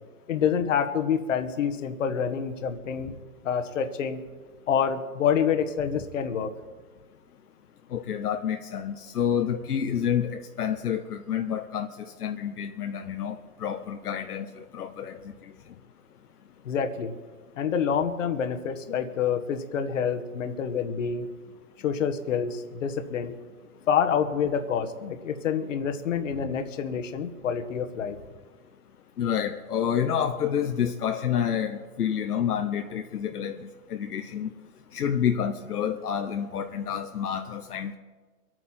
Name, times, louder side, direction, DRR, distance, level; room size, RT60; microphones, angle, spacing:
voice 1, 0.3-3.1 3.4-4.2 4.7-6.5 16.6-17.1 17.6-21.3 21.8-23.3 23.9-28.2, left 7 dB, 55° left, 8 dB, 1.5 m, -27 dB
voice 2, 7.9-15.2 29.2-34.5 34.9-38.0, left 8 dB, 75° left, 6 dB, 1.1 m, -29 dB
25.0 x 8.9 x 4.4 m, 1.4 s
hypercardioid pair, 155°, 46 cm